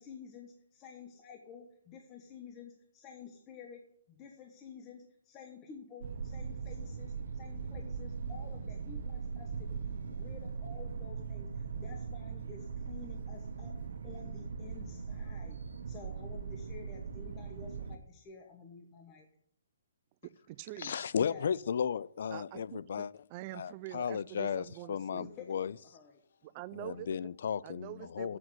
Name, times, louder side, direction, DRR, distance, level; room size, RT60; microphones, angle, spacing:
voice 1, 0.0-13.8 14.0-15.6 15.9-19.3 21.2-21.5 24.8-26.2, left 6 dB, 25° left, 1.1 m, -51 dB
sound 1, 6.0-18.0, right 5 dB, 70° right, 0.9 m, -40 dB
voice 2, 20.2-21.1 22.3-25.3 26.4-27.3 27.6-28.4, right 16 dB, 30° right, 0.3 m, -46 dB
voice 3, 20.8-23.1 23.5-25.7 26.8-28.4, left 7 dB, 60° left, 0.4 m, -34 dB
7.6 x 5.9 x 7.8 m
hypercardioid pair, 150°, 0 cm